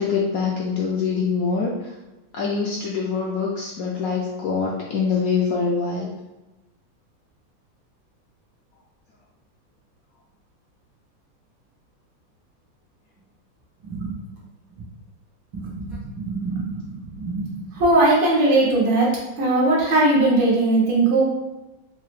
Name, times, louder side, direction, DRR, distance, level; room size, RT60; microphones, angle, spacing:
voice 1, 0.0-1.9 2.3-6.1, left 5 dB, 75° left, -3 dB, 0.8 m, -24 dB
voice 2, 13.8-14.2 15.5-21.2, right 2 dB, 85° right, -4 dB, 1.9 m, -20 dB
5.5 x 2.0 x 3.1 m, 1.0 s
omnidirectional pair, 2.0 m